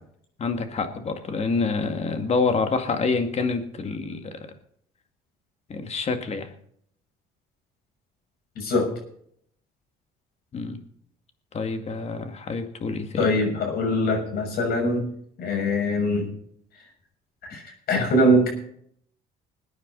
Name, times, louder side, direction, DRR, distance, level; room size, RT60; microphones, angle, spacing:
voice 1, 0.4-4.3 5.7-6.5 10.5-10.8 11.5-13.3, left 4 dB, 40° left, 7 dB, 2.2 m, -27 dB
voice 2, 8.6-8.9 13.2-15.0 15.4-16.3 17.5-18.5, left 1 dB, 65° left, 2 dB, 6.4 m, -22 dB
21.0 x 9.5 x 4.1 m, 0.66 s
cardioid pair, 110°, 17 cm